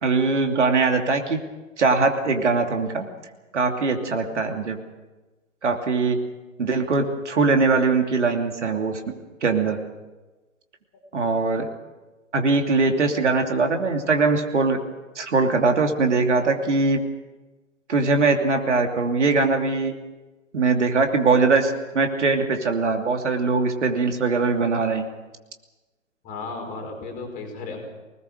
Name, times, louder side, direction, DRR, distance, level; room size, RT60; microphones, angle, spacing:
voice 1, 0.0-1.4 1.8-3.1 3.5-4.8 5.6-6.2 6.6-9.0 9.4-9.8 11.1-11.7 12.3-14.8 15.1-17.0 17.9-19.9 20.5-25.1, right 4 dB, 60° right, 4 dB, 2.8 m, -21 dB
voice 2, 26.2-27.9, left 3 dB, 20° left, 3 dB, 4.8 m, -34 dB
25.5 x 19.5 x 6.6 m, 1.2 s
figure-of-eight pair, 130°, 39 cm